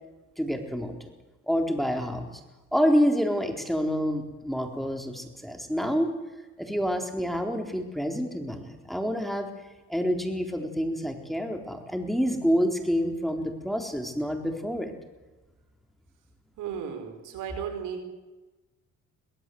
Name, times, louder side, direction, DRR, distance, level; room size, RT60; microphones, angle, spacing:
voice 1, 0.4-1.1 1.5-2.4 2.7-6.1 6.6-9.5 9.9-14.9, equal, ahead, 4 dB, 4.0 m, -27 dB
voice 2, 16.6-18.1, right 7 dB, 85° right, 5 dB, 4.5 m, -35 dB
23.5 x 17.0 x 7.9 m, 1.1 s
cardioid pair, 90°, 30 cm